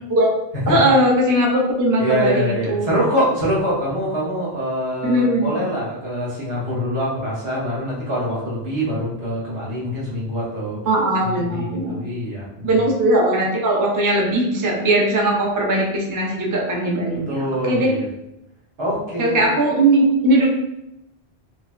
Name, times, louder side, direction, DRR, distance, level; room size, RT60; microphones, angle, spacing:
voice 1, 0.7-2.9 5.0-5.6 10.9-12.0 12.6-17.4 17.6-17.9 19.2-20.5, right 1 dB, 30° right, -2 dB, 0.3 m, -19 dB
voice 2, 2.0-10.8 11.2-12.8 17.3-18.1 18.8-19.4, equal, 75° right, -6 dB, 1.2 m, -24 dB
3.3 x 2.2 x 2.3 m, 0.88 s
omnidirectional pair, 1.1 m